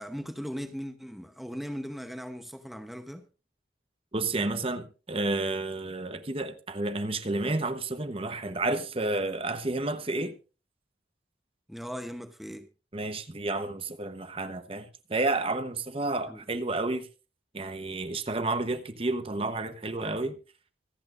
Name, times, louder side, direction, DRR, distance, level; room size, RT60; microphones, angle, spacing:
voice 1, 0.0-3.3 11.7-12.7 16.3-16.4, equal, ahead, 0.8 m, -38 dB
voice 2, 4.1-10.4 12.9-17.1 17.5-20.4, right 2 dB, 30° right, 1.0 m, -31 dB
25.0 x 8.6 x 2.5 m
head